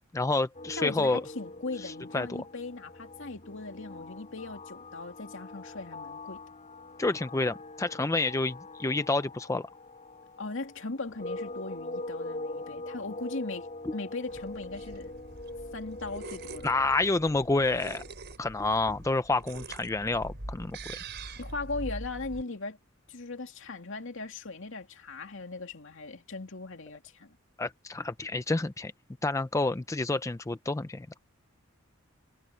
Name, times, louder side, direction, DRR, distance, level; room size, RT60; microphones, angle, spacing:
voice 1, 0.1-1.2 1.8-2.4 7.0-9.6 13.9-14.0 16.6-18.0 18.4-21.0 27.6-28.9 29.2-31.1, left 2 dB, 15° left, 0.4 m, -29 dB
sound 1, 0.5-18.1, left 2 dB, 35° left, 7.1 m, -43 dB
voice 2, 0.8-6.4 10.4-15.1 15.7-16.7 21.4-22.8 23.1-27.4, left 3 dB, 65° left, 2.6 m, -39 dB
sound 2, 14.3-22.4, right 2 dB, 55° right, 5.1 m, -43 dB
head